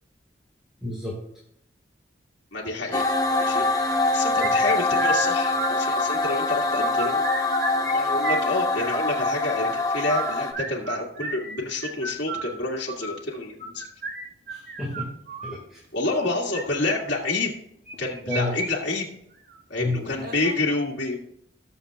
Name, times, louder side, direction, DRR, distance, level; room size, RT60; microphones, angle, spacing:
voice 1, 0.8-1.2 4.4-4.6 14.5-15.1 15.4-15.8 18.3-18.6 19.8-20.2, left 2 dB, 5° right, -4 dB, 1.9 m, -30 dB
voice 2, 2.5-3.1 3.4-3.6 4.1-7.2 7.8-13.8 15.9-17.5 18.0-19.1 19.7-21.2, left 2 dB, 70° left, -3 dB, 2.0 m, -28 dB
sound 1, 2.9-10.5, left 2 dB, 20° left, 0.8 m, -24 dB
sound 2, 4.4-6.3 6.6-9.2 9.9-15.6 16.3-16.6 17.9-18.7 19.0-19.1 19.5-19.6 20.2-20.6, right 3 dB, 50° right, 1.5 m, -32 dB
20.0 x 7.1 x 2.4 m, 0.73 s
head